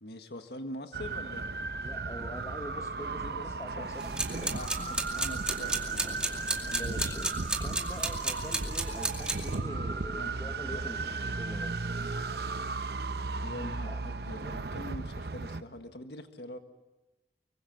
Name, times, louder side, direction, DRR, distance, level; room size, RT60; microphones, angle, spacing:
voice 1, 0.0-1.5 3.2-3.5 3.8-3.9 4.5-7.0 10.1-11.2 13.4-16.6, left 1 dB, 70° left, 7 dB, 1.7 m, -44 dB
sound 1, 0.9-15.6, right 3 dB, 65° right, 0.8 m, -35 dB
voice 2, 1.8-4.6 6.8-11.0 11.4-11.7 13.8-14.0, left 1 dB, 20° left, 6 dB, 1.4 m, -44 dB
sound 2, 4.0-9.5, right 2 dB, 5° right, 2.4 m, -34 dB
25.0 x 23.5 x 7.4 m, 1.1 s
head